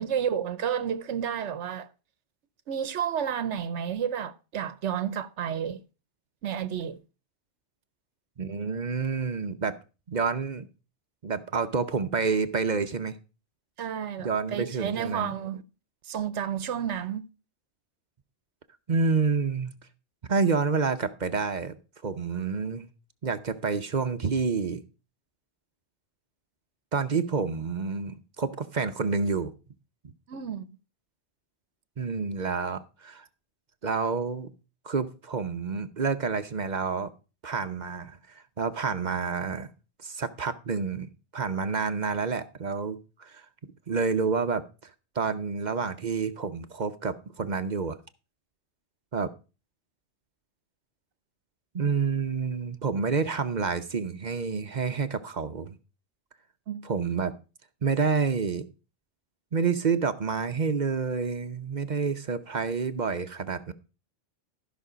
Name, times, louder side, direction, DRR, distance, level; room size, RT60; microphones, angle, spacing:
voice 1, 0.0-1.9 2.7-5.8 6.4-7.0 13.8-15.6 16.0-17.3 30.3-30.7 56.7-56.8, right 8 dB, 75° right, 1.0 m, -31 dB
voice 2, 8.4-9.8 10.1-10.7 11.2-13.2 14.2-15.3 18.9-19.7 20.3-21.7 22.0-22.9 23.2-24.8 26.9-29.5 32.0-33.2 33.8-34.5 34.8-37.1 37.4-38.2 38.6-39.7 40.0-41.1 41.3-43.4 43.9-44.6 45.2-48.0 49.1-49.3 51.7-55.8 56.8-57.3 57.8-58.6 59.5-63.7, right 5 dB, 45° right, 0.8 m, -28 dB
13.5 x 6.1 x 5.0 m
omnidirectional pair, 1.2 m